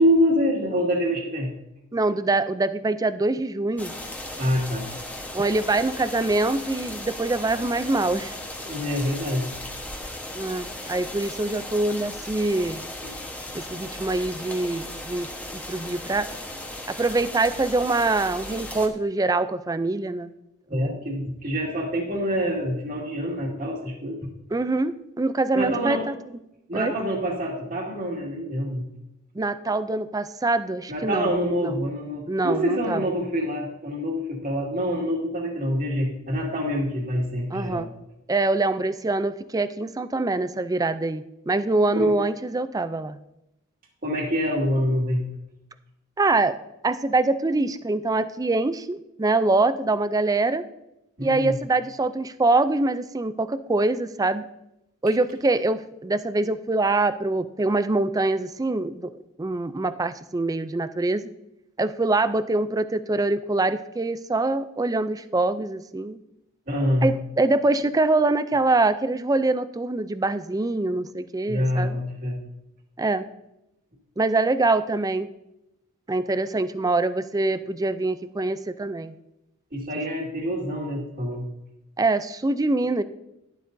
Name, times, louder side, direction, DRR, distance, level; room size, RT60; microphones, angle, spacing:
voice 1, 0.0-1.5 4.4-4.8 8.6-9.5 13.0-13.1 20.7-24.3 25.5-26.0 26.7-28.9 30.9-37.9 42.0-42.1 44.0-45.3 51.2-51.6 66.7-67.1 71.5-72.4 79.7-81.5, equal, 40° right, 0 dB, 2.1 m, -26 dB
voice 2, 1.9-3.9 5.3-8.3 10.3-12.8 13.5-15.3 15.5-16.3 16.9-20.3 20.7-21.0 24.5-26.1 26.7-26.9 29.3-31.3 31.6-31.7 32.3-33.0 37.5-37.9 38.3-43.2 46.2-46.6 46.8-50.6 51.2-54.5 55.0-61.3 61.8-66.2 67.0-72.0 73.0-73.3 74.2-75.3 76.1-79.1 82.0-83.0, right 2 dB, 15° right, 12 dB, 0.4 m, -24 dB
sound 1, 3.8-18.9, left 1 dB, 5° left, 1.1 m, -36 dB
11.5 x 11.5 x 2.7 m, 0.88 s
head